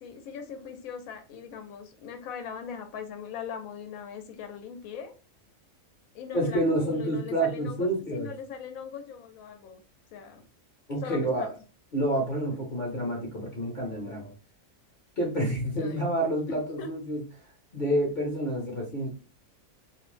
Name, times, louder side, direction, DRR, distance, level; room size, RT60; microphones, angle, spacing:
voice 1, 0.0-5.1 6.1-9.8 10.1-10.4 11.0-11.5 15.8-16.1 16.5-16.9, left 7 dB, 90° left, 6 dB, 1.0 m, -40 dB
voice 2, 6.3-8.3 10.9-11.6 11.9-14.3 15.2-17.2 17.7-19.1, right 1 dB, 45° left, -3 dB, 0.8 m, -28 dB
2.6 x 2.0 x 3.1 m, 0.34 s
omnidirectional pair, 1.4 m